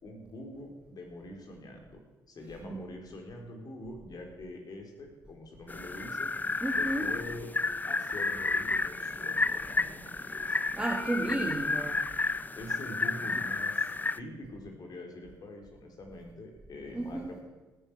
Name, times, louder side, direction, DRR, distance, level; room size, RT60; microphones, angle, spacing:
voice 1, 0.0-2.0 2.3-6.3 6.8-7.5 7.8-10.6 11.2-11.6 12.6-13.9 14.2-17.4, left 1 dB, 50° left, 4.1 m, -44 dB
sound 1, 5.7-14.2, left 3 dB, 20° left, 0.5 m, -31 dB
voice 2, 6.6-7.1 10.7-12.1 16.9-17.4, right 2 dB, 10° right, 1.7 m, -33 dB
16.5 x 10.0 x 6.2 m
hypercardioid pair, 55°, 9 cm